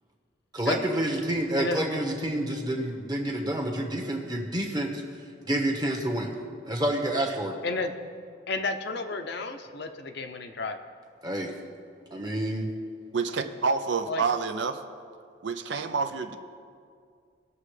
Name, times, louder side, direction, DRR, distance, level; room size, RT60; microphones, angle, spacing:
voice 1, 0.5-5.0 5.4-6.4 6.7-7.6 11.2-11.5 12.1-12.7, right 1 dB, 20° right, 2 dB, 1.2 m, -28 dB
voice 2, 8.5-10.8 14.1-14.2, left 3 dB, 55° left, 7 dB, 0.6 m, -31 dB
voice 3, 13.1-14.8 15.4-16.4, right 5 dB, 60° right, 7 dB, 0.6 m, -28 dB
20.5 x 6.9 x 3.3 m, 2.2 s
head